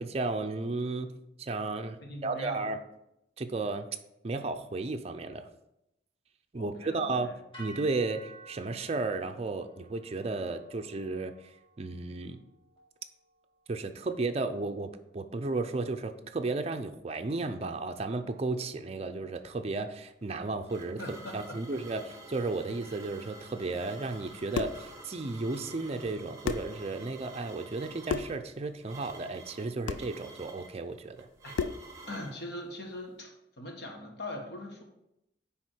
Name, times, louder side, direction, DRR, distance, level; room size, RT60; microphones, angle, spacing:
voice 1, 0.0-2.0 2.2-2.8 3.4-3.9 4.2-5.5 6.5-7.3 7.6-11.3 11.8-12.4 13.7-31.3, right 3 dB, 35° right, 6 dB, 0.5 m, -34 dB
voice 2, 2.0-2.6 6.5-7.4 21.0-21.8 31.4-31.6 32.1-34.8, left 1 dB, 60° left, 1 dB, 1.3 m, -41 dB
sound 1, 7.5-15.8, right 3 dB, 25° left, 1.9 m, -54 dB
sound 2, 20.2-32.4, right 2 dB, 15° right, 1.0 m, -50 dB
sound 3, 24.5-24.9 26.0-26.1 26.4-26.8 28.1-28.4 29.9-30.1 31.5-31.9, left 5 dB, 85° left, 0.4 m, -33 dB
9.3 x 3.5 x 4.5 m, 0.86 s
head